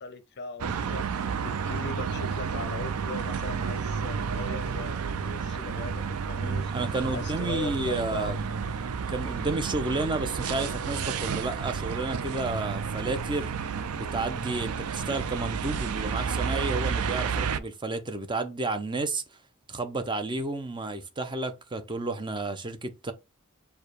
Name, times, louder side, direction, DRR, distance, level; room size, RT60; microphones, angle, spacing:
voice 1, 0.0-8.4, left 3 dB, 50° left, 0.5 m, -39 dB
sound 1, 0.6-17.6, right 6 dB, 80° right, 0.4 m, -31 dB
voice 2, 6.7-8.4 9.1-13.5 13.9-19.2 19.7-23.1, right 2 dB, 20° right, 0.6 m, -31 dB
4.6 x 2.2 x 4.8 m
head